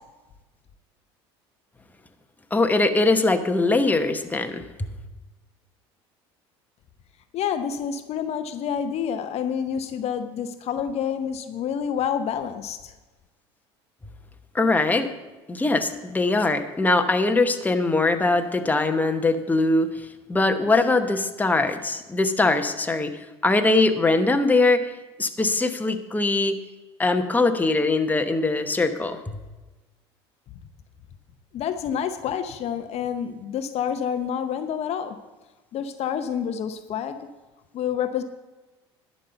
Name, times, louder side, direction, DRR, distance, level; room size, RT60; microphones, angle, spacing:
voice 1, 2.5-4.9 14.5-15.1 15.5-23.1 23.4-24.9 25.2-26.6 27.0-29.4, left 3 dB, 10° left, 6 dB, 1.0 m, -22 dB
voice 2, 7.3-12.9 31.5-35.2 35.7-37.3 37.7-38.2, left 8 dB, 50° left, 9 dB, 0.7 m, -28 dB
11.0 x 5.5 x 8.0 m, 1.2 s
hypercardioid pair, 75°, 14 cm